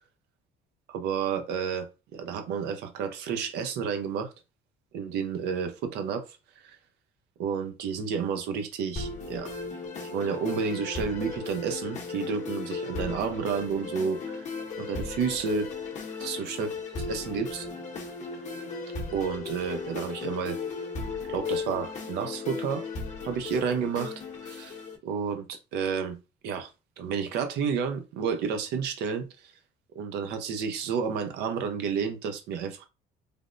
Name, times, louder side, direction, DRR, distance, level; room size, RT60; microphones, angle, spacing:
voice 1, 0.9-4.3 4.9-6.3 6.6-6.8 7.4-9.5 10.0-14.5 14.8-15.7 16.2-16.7 17.1-17.7 19.1-20.6 21.3-22.9 23.2-24.1 24.4-26.2 26.4-26.7 27.0-29.3 29.9-32.8, right 6 dB, 80° right, 0.6 m, -31 dB
sound 1, 9.0-25.0, left 4 dB, 45° left, 0.8 m, -36 dB
3.3 x 2.0 x 2.5 m
cardioid pair, 110°, 17 cm